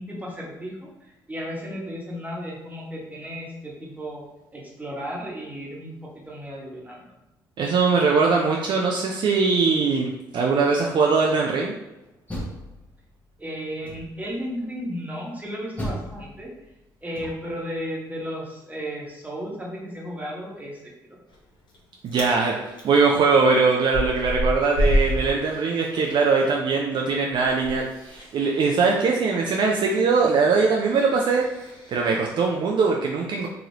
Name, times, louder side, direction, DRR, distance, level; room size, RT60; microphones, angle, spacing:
voice 1, 0.0-4.2 4.5-6.0 6.3-7.0 13.4-16.5 17.0-21.2, equal, 15° right, -3 dB, 1.2 m, -34 dB
voice 2, 7.6-11.8 22.0-31.4 31.9-33.5, right 4 dB, 55° right, 0 dB, 0.4 m, -21 dB
Door, 12.0-13.3 13.8-14.4 15.8-17.7, equal, 15° left, 1.0 m, -36 dB
Chewing mastication, 21.3-21.8 22.0-22.3 22.7-26.5 26.8-32.2, left 1 dB, 50° left, 1.0 m, -29 dB
3.0 x 2.5 x 2.8 m, 0.96 s
hypercardioid pair, 50°, 10 cm